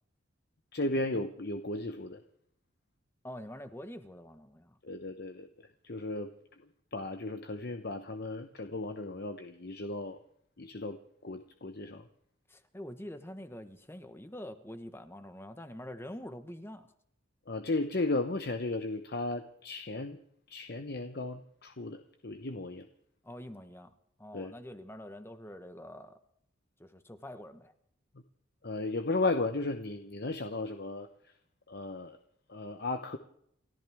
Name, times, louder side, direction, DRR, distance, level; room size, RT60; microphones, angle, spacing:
voice 1, 0.7-2.2 4.8-5.5 5.8-6.3 6.9-10.2 10.6-12.0 17.5-20.2 20.5-22.9 24.3-24.5 28.6-31.1 31.7-32.2 32.5-33.2, left 2 dB, 50° left, 0.9 m, -35 dB
voice 2, 3.2-4.8 12.5-16.9 23.2-23.9 24.2-26.2 26.8-27.7, left 1 dB, 10° left, 1.2 m, -45 dB
30.0 x 13.5 x 3.6 m
head